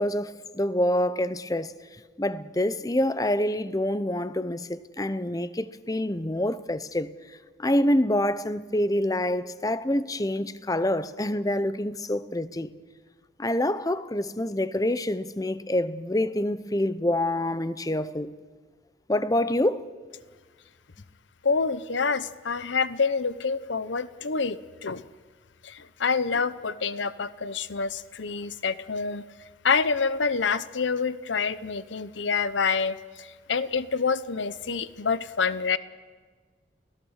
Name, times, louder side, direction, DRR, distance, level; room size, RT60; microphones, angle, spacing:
voice 1, 0.0-1.7 2.2-7.1 7.6-12.7 13.4-18.3 19.1-19.8, left 1 dB, 20° left, 0.7 m, -26 dB
voice 2, 21.4-25.0 25.6-29.2 29.6-35.8, left 5 dB, 85° left, 0.8 m, -27 dB
29.5 x 17.5 x 6.5 m
head